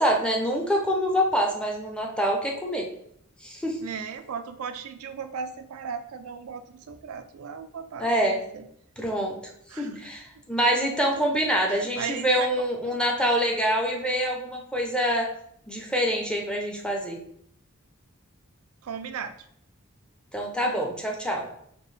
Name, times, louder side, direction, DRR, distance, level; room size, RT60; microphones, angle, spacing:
voice 1, 0.0-2.9 3.4-3.8 8.0-8.4 9.0-9.4 9.8-15.3 15.7-17.2 20.3-21.5, equal, 5° left, 0 dB, 0.6 m, -25 dB
voice 2, 3.8-8.1 8.5-8.7 9.7-10.1 11.7-12.5 12.8-13.0 18.8-19.3 20.6-20.7, right 6 dB, 80° right, 9 dB, 0.4 m, -36 dB
4.4 x 2.8 x 3.2 m, 0.69 s
head